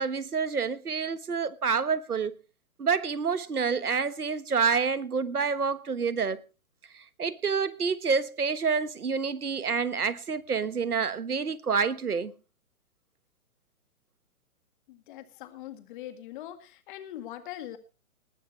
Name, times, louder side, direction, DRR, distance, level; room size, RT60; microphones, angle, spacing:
voice 1, 0.0-2.3 2.8-6.4 7.2-12.3, right 5 dB, 85° right, 1.4 m, -28 dB
voice 2, 14.9-17.8, left 12 dB, 35° left, 2.0 m, -42 dB
19.5 x 13.0 x 3.2 m
figure-of-eight pair, 135°, 44 cm